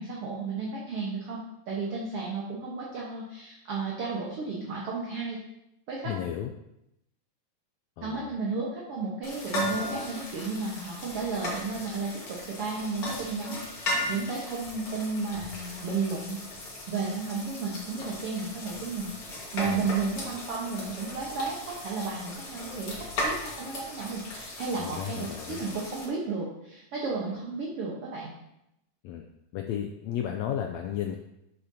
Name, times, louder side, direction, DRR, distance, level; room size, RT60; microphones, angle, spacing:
voice 1, 0.0-5.4 5.9-6.1 8.0-16.4 16.9-19.1 19.5-28.3, right 4 dB, 55° right, -4 dB, 1.8 m, -33 dB
voice 2, 6.0-6.5 8.0-8.3 19.7-19.9 24.8-25.6 29.0-29.3 29.5-31.2, left 10 dB, 90° left, 4 dB, 1.5 m, -33 dB
sound 1, 9.2-26.1, left 1 dB, 50° left, 2.6 m, -37 dB
12.0 x 6.8 x 2.8 m, 0.85 s
omnidirectional pair, 3.7 m